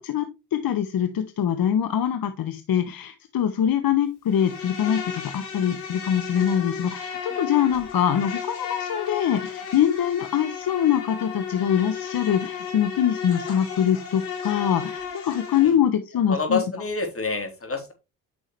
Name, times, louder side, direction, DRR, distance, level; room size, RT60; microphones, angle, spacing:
voice 1, 0.0-16.6, left 9 dB, 50° left, 9 dB, 1.1 m, -24 dB
Insect, 4.3-15.7, left 6 dB, 85° left, 2.9 m, -34 dB
voice 2, 16.3-17.9, left 4 dB, 30° left, 5 dB, 3.6 m, -27 dB
9.6 x 6.1 x 3.2 m, 0.26 s
hypercardioid pair, 55°, 45 cm